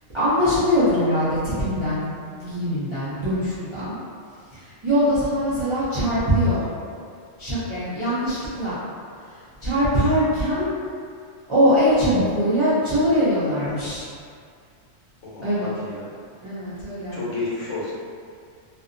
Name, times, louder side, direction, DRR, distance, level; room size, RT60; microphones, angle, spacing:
voice 1, 0.1-4.0 4.5-6.6 7.4-8.8 9.3-10.7 11.5-14.1 15.4-15.7 16.4-17.3, equal, 35° right, -14 dB, 0.4 m, -22 dB
voice 2, 15.2-16.1 17.1-17.9, left 3 dB, 70° left, -7 dB, 1.0 m, -31 dB
2.6 x 2.1 x 2.5 m, 2.2 s
omnidirectional pair, 1.3 m